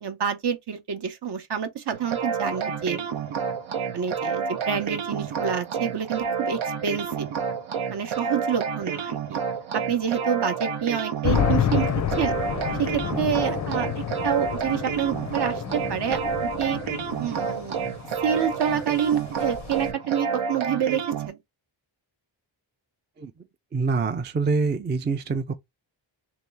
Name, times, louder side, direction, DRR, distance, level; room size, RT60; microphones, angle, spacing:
voice 1, 0.0-3.1 3.9-7.3 7.9-9.4 9.7-12.4 12.8-16.8 17.2-17.8 18.2-21.4, right 8 dB, 60° right, 0.8 m, -28 dB
sound 1, 1.9-21.3, right 6 dB, 90° right, 0.8 m, -29 dB
sound 2, 11.2-19.9, left 9 dB, 40° left, 0.4 m, -30 dB
voice 2, 23.7-25.5, right 4 dB, 25° right, 0.4 m, -25 dB
3.1 x 2.8 x 3.3 m
wide cardioid pair, 120°, 46 cm